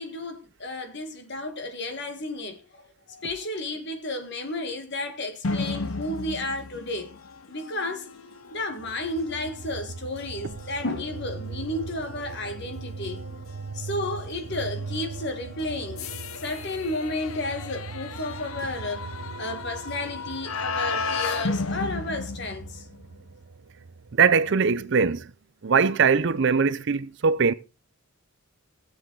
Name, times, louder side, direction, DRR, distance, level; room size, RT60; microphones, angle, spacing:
voice 1, 0.0-2.8 3.1-7.1 7.5-8.1 8.5-13.2 13.7-16.1 16.4-19.1 19.4-22.8, left 2 dB, 50° left, 1.6 m, -32 dB
sound 1, 5.4-23.2, left 3 dB, 65° left, 0.8 m, -35 dB
sound 2, 8.8-24.9, right 4 dB, 90° right, 0.8 m, -40 dB
voice 2, 24.1-25.3 25.6-27.5, right 5 dB, 55° right, 0.5 m, -21 dB
17.0 x 7.8 x 3.9 m
head